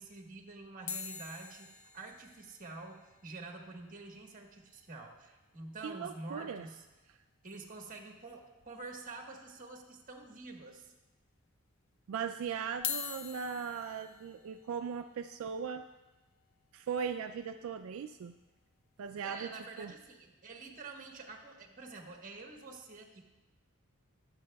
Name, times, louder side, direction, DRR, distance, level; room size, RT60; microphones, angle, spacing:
voice 1, 0.0-6.8 7.4-10.9 19.2-23.2, right 3 dB, 40° right, 2 dB, 1.3 m, -47 dB
sound 1, 0.9-5.2 5.5-5.6 5.8-6.0 6.3-6.5 7.8-7.9 8.6-9.1 9.6-9.7 10.6-10.7 12.7-18.8 19.3-19.6, left 8 dB, 70° left, 0.6 m, -46 dB
voice 2, 5.8-6.7 12.1-15.8 16.7-18.3 19.0-19.5 19.8-19.9, right 6 dB, 70° right, 7 dB, 0.3 m, -38 dB
20.5 x 7.5 x 2.3 m, 1.1 s
head